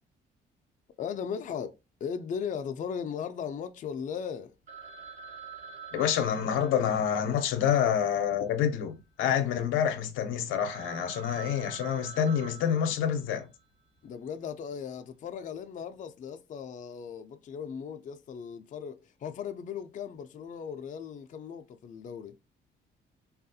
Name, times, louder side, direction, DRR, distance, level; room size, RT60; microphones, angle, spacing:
voice 1, 1.0-4.5 14.0-22.4, left 7 dB, 40° left, 0.4 m, -37 dB
Telephone, 4.7-9.0 9.3-9.4 9.9-10.0 10.4-10.5 10.7-13.6, right 5 dB, 35° right, 1.1 m, -47 dB
voice 2, 5.9-13.5, left 8 dB, 85° left, 0.6 m, -27 dB
3.4 x 2.3 x 2.6 m
cardioid pair, 90°, 20 cm